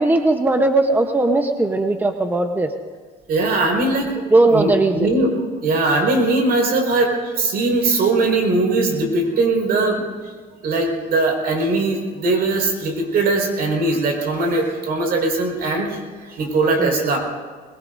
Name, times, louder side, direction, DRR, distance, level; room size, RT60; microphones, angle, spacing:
voice 1, 0.0-2.7 4.3-5.1 16.8-17.0, right 2 dB, 10° right, 5 dB, 0.9 m, -18 dB
voice 2, 3.3-4.1 4.5-5.3 5.6-10.1 10.6-15.9 16.2-17.2, right 2 dB, 65° right, 1 dB, 4.9 m, -20 dB
22.5 x 21.5 x 2.7 m, 1.5 s
cardioid pair, 110°, 17 cm